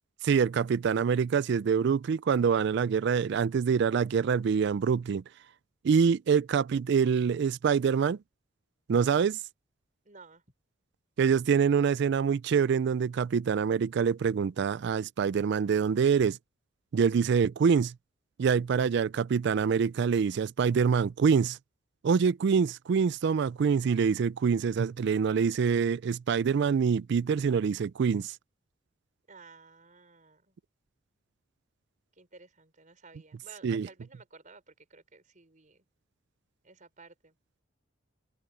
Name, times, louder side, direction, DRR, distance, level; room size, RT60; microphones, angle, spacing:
voice 1, 0.2-5.2 5.8-8.2 8.9-9.4 11.2-16.4 16.9-17.9 18.4-21.6 22.0-28.4 33.6-33.9, right 6 dB, 60° right, 0.4 m, -25 dB
voice 2, 10.1-10.4 29.3-30.6 32.1-35.8 36.6-37.4, right 4 dB, 40° right, 5.2 m, -54 dB
head